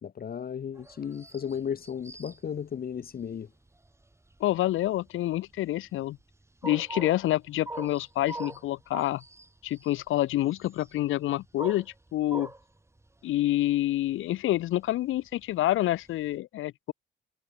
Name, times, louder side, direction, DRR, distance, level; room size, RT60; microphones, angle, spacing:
voice 1, 0.0-3.5, left 8 dB, 50° left, 1.8 m, -35 dB
sound 1, 0.7-16.3, right 2 dB, 15° right, 4.1 m, -44 dB
voice 2, 4.4-6.2 6.6-9.2 9.6-12.5 13.2-16.9, left 15 dB, 85° left, 3.4 m, -27 dB
cardioid pair, 90°, 20 cm